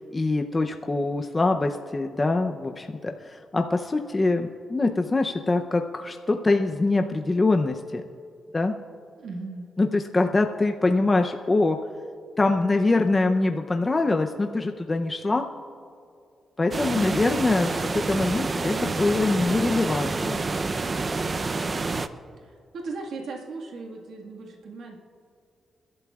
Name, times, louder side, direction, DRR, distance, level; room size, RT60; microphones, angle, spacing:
voice 1, 0.0-8.0 8.5-8.8 9.8-11.8 12.4-15.5 16.6-20.4, left 3 dB, 25° left, 4 dB, 0.6 m, -24 dB
voice 2, 9.2-9.7 16.9-17.3 22.4-25.0, right 3 dB, 80° right, 0 dB, 1.7 m, -37 dB
sound 1, 16.7-22.1, right 3 dB, 35° right, 0.6 m, -28 dB
29.0 x 12.0 x 2.4 m, 2.4 s
cardioid pair, 100°, 0 cm